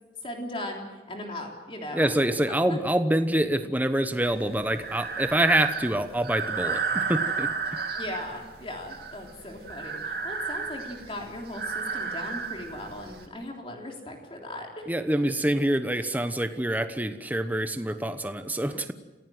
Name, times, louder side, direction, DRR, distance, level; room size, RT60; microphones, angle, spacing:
voice 1, 0.2-2.1 2.7-2.8 8.0-14.9, left 1 dB, 30° left, 1 dB, 3.5 m, -38 dB
voice 2, 1.9-7.5 14.9-18.9, right 1 dB, 10° right, 9 dB, 1.0 m, -26 dB
Breathing, 4.2-13.3, right 5 dB, 60° right, 2.4 m, -33 dB
28.5 x 16.0 x 7.8 m, 1.1 s
head